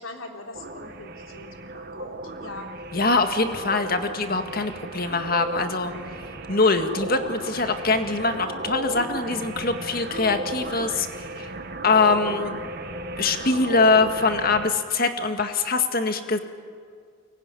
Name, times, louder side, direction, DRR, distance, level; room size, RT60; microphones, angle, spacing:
voice 1, 0.0-2.8, left 2 dB, 80° left, 3 dB, 3.3 m, -41 dB
sound 1, 0.5-14.7, right 2 dB, 50° right, 1.7 m, -35 dB
voice 2, 2.9-5.9 6.5-11.1 11.4-11.5 11.8-12.6 13.2-16.4, left 3 dB, 45° left, 7 dB, 1.9 m, -23 dB
23.5 x 21.0 x 9.9 m, 2.1 s
head